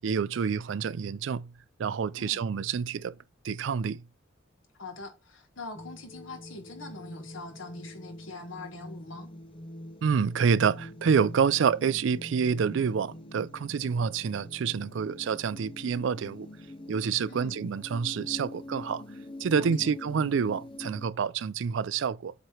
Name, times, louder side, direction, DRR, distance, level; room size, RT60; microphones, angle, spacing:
voice 1, 0.0-1.5 1.8-3.2 3.4-4.0 10.0-16.5 16.9-19.0 19.4-22.3, right 6 dB, 70° right, 0.4 m, -28 dB
voice 2, 4.8-9.3 17.3-17.6 19.6-20.0, left 3 dB, 80° left, 1.6 m, -43 dB
sound 1, 5.7-21.1, left 1 dB, 25° left, 0.5 m, -45 dB
7.9 x 3.0 x 4.4 m
head